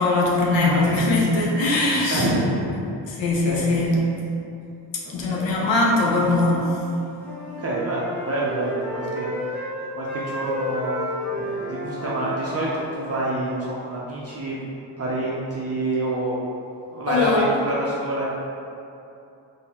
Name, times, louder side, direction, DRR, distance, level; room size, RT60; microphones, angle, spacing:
voice 1, 0.0-2.3 3.2-4.0 5.1-6.7 17.1-17.5, left 2 dB, 70° left, -3 dB, 0.7 m, -21 dB
voice 2, 0.5-1.0 2.1-2.8 3.2-3.7 5.3-5.6 5.9-6.1 7.6-9.3 10.0-11.0 11.3-16.4 16.9-18.3, right 1 dB, 30° right, -6 dB, 0.6 m, -27 dB
Wind instrument woodwind instrument, 6.9-9.8 10.0-13.4, equal, 5° left, 0.8 m, -32 dB
3.7 x 2.8 x 2.9 m, 2.7 s
cardioid pair, 110°, 48 cm